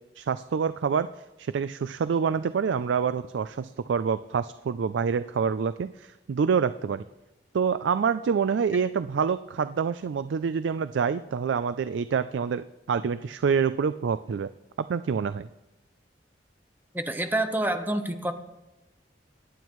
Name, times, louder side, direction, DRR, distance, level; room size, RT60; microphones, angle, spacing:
voice 1, 0.2-1.1 1.4-7.0 7.5-14.5 14.9-15.5, right 6 dB, 90° right, 13 dB, 0.4 m, -27 dB
voice 2, 16.9-18.3, right 1 dB, 10° right, 6 dB, 0.9 m, -27 dB
24.0 x 9.0 x 3.1 m, 0.99 s
head